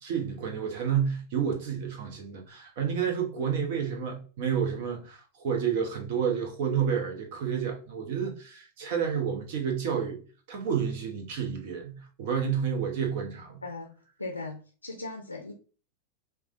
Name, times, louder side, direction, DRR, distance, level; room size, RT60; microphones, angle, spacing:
voice 1, 0.0-10.2 10.5-13.6, right 7 dB, 50° right, 1.0 m, -30 dB
voice 2, 13.6-15.5, left 3 dB, 85° left, 0.5 m, -39 dB
4.6 x 2.3 x 2.5 m
figure-of-eight pair, 90°, 0 cm